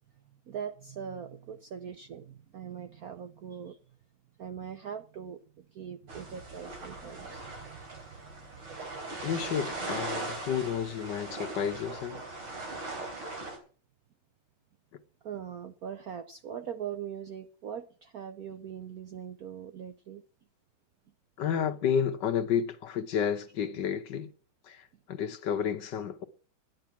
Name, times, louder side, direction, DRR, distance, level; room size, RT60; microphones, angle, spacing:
voice 1, 0.5-3.8 4.4-7.8 8.1-9.0 15.2-20.2, right 8 dB, 65° right, 0.9 m, -41 dB
sound 1, 6.1-13.6, right 2 dB, 90° right, 4.4 m, -39 dB
voice 2, 9.2-12.2 21.4-24.3 24.6-26.2, left 8 dB, 60° left, 1.5 m, -31 dB
12.0 x 10.5 x 5.8 m
omnidirectional pair, 2.3 m